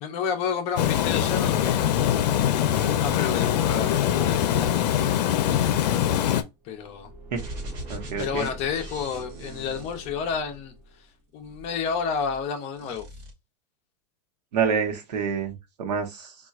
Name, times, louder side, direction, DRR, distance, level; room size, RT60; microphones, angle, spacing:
voice 1, 0.0-2.3 3.0-5.6 6.6-7.1 8.2-10.7 11.3-13.1, left 6 dB, 30° left, 0.5 m, -31 dB
Water, 0.8-6.4, left 10 dB, 85° left, 0.5 m, -23 dB
Car / Engine, 6.6-11.2, equal, 10° right, 0.8 m, -43 dB
sound 1, 7.3-10.7 11.4-12.5 12.7-13.3, right 1 dB, 40° right, 0.9 m, -42 dB
voice 2, 7.9-8.5 14.5-16.3, right 6 dB, 80° right, 1.0 m, -27 dB
4.2 x 2.4 x 2.3 m
supercardioid pair, 160°, 21 cm